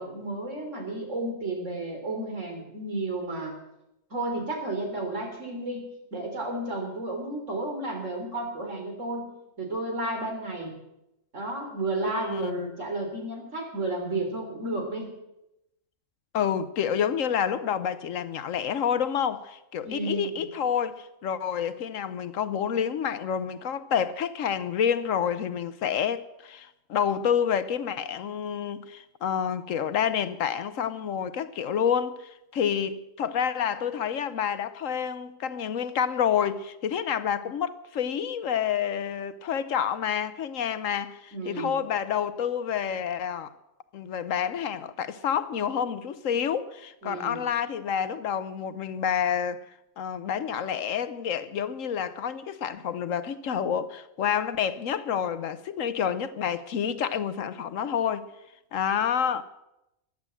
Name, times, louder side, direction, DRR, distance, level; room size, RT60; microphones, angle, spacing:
voice 1, 0.0-3.6 4.1-10.7 11.3-15.1 19.8-20.4 41.3-41.8 47.0-47.4, right 2 dB, 65° right, 3.8 m, -32 dB
voice 2, 12.0-12.7 16.3-43.5 43.9-49.6 50.0-58.3 58.7-59.4, left 8 dB, 75° left, 1.2 m, -28 dB
14.5 x 10.0 x 7.6 m
omnidirectional pair, 1.4 m